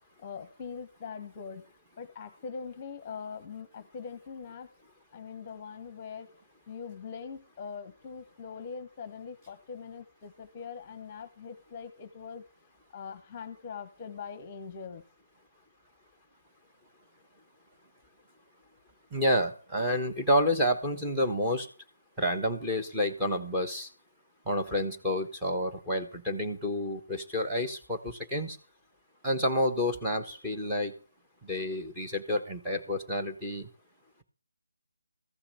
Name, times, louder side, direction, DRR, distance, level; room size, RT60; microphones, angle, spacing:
voice 1, 0.2-1.6 2.0-4.7 5.1-6.3 6.7-12.4 12.9-15.0, left 6 dB, 20° left, 13 dB, 1.2 m, -42 dB
voice 2, 19.1-21.7 22.2-23.9 24.4-28.6 29.2-30.9 31.4-33.7, left 1 dB, 5° right, 1 dB, 1.4 m, -29 dB
15.0 x 5.8 x 8.5 m, 0.36 s
figure-of-eight pair, 150°, 0 cm